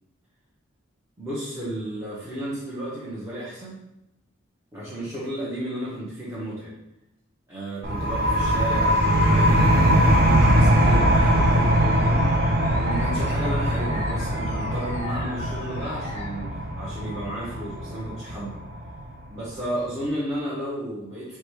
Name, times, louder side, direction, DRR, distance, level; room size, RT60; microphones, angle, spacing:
voice 1, 1.2-3.8 4.7-6.7 7.5-12.4 12.7-18.6 19.3-21.4, right 1 dB, 15° right, -9 dB, 0.9 m, -33 dB
sound 1, 7.8-19.2, equal, 50° right, 0.6 m, -21 dB
sound 2, 8.7-16.3, left 2 dB, 35° left, 0.7 m, -37 dB
4.8 x 2.3 x 4.7 m, 0.88 s
head